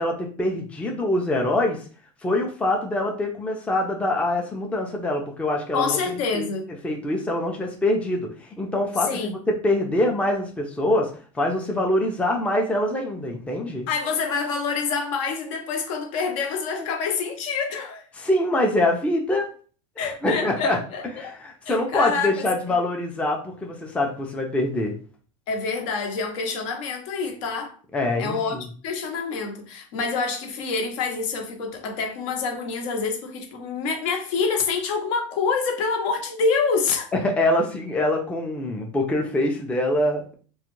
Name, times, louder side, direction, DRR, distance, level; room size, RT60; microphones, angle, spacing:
voice 1, 0.0-1.8 2.2-6.5 6.8-8.3 8.6-9.4 9.6-11.1 11.3-13.9 18.2-19.5 20.0-20.8 21.2-24.9 27.9-28.7 37.1-40.3, left 1 dB, 5° left, 0.4 m, -24 dB
voice 2, 5.7-6.7 9.0-9.3 13.9-18.1 20.0-21.0 21.7-22.4 25.5-27.7 28.2-28.6 28.8-37.1, left 4 dB, 65° left, 0.7 m, -26 dB
2.3 x 2.1 x 3.0 m
supercardioid pair, 115°, 17 cm